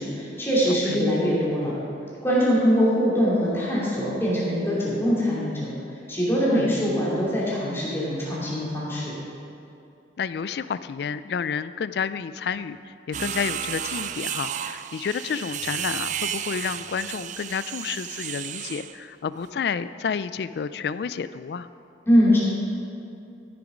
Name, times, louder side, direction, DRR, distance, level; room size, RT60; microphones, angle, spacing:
voice 1, 0.0-1.7 2.2-5.7 6.1-9.1 22.1-22.4, equal, 15° left, -7 dB, 2.5 m, -22 dB
voice 2, 0.7-1.0 6.5-6.7 10.2-12.8 13.1-21.7, left 6 dB, 65° left, 14 dB, 0.3 m, -30 dB
sound 1, 13.1-19.0, right 10 dB, 40° right, 0.3 m, -32 dB
14.5 x 6.9 x 5.0 m, 2.7 s
head